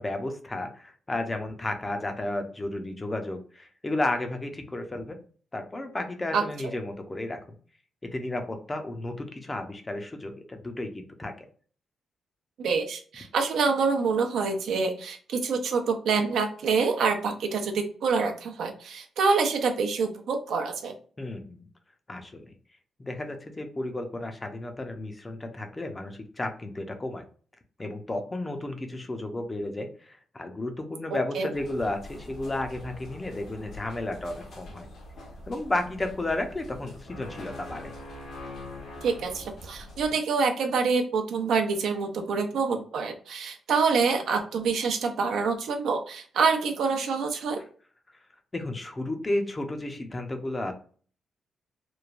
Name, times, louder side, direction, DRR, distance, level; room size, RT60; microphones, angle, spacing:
voice 1, 0.0-5.2 5.5-7.4 8.1-11.5 21.2-21.6 22.1-22.5 23.0-27.2 27.8-34.9 35.5-37.9 48.5-50.7, left 2 dB, 20° left, 6 dB, 0.5 m, -33 dB
voice 2, 12.6-20.9 31.1-31.5 39.0-47.6, right 5 dB, 80° right, 4 dB, 0.5 m, -26 dB
sound 1, 31.5-40.1, left 1 dB, 70° left, 0.9 m, -44 dB
3.0 x 2.1 x 2.4 m, 0.43 s
cardioid pair, 110°, 0 cm